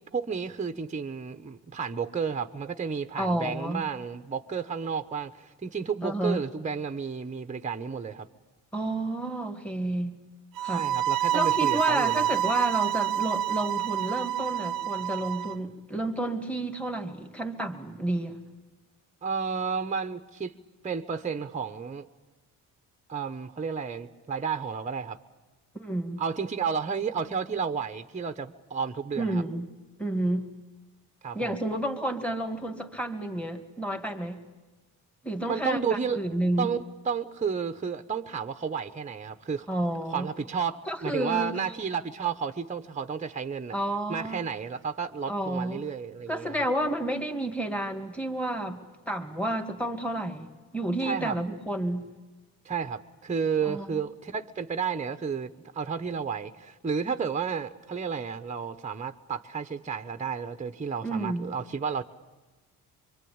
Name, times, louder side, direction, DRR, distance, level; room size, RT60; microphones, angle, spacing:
voice 1, 0.1-8.3 10.6-12.3 19.2-20.5 20.8-22.1 23.1-25.2 26.2-29.4 31.2-31.5 35.4-36.2 36.6-39.7 40.1-43.8 44.1-46.6 51.0-51.4 52.6-62.0, right 6 dB, 20° right, 9 dB, 1.0 m, -32 dB
voice 2, 3.2-3.9 6.0-6.4 8.7-10.2 10.6-10.9 11.3-18.4 25.7-26.2 29.2-29.7 30.0-30.5 31.3-34.4 35.2-36.7 39.7-40.3 40.9-41.5 43.7-44.4 45.3-45.8 46.3-48.8 49.1-52.1 53.6-53.9 61.0-61.5, right 1 dB, 5° left, 5 dB, 2.5 m, -30 dB
sound 1, 10.6-15.5, right 11 dB, 70° right, 0.8 m, -27 dB
24.5 x 24.0 x 8.8 m, 1.2 s
cardioid pair, 95°, 36 cm